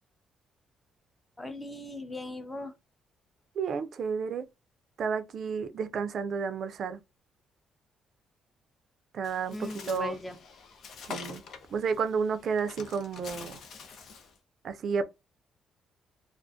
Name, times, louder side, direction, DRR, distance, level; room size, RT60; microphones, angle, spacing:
voice 1, 1.4-2.7 9.5-10.4, left 2 dB, 15° left, 0.5 m, -39 dB
voice 2, 3.6-4.5 5.0-7.0 9.1-10.1 11.1-11.4 11.7-13.6 14.6-15.0, right 5 dB, 60° right, 0.4 m, -31 dB
Bird, 9.2-14.4, left 5 dB, 70° left, 0.6 m, -45 dB
2.4 x 2.2 x 2.5 m
cardioid pair, 90°, 0 cm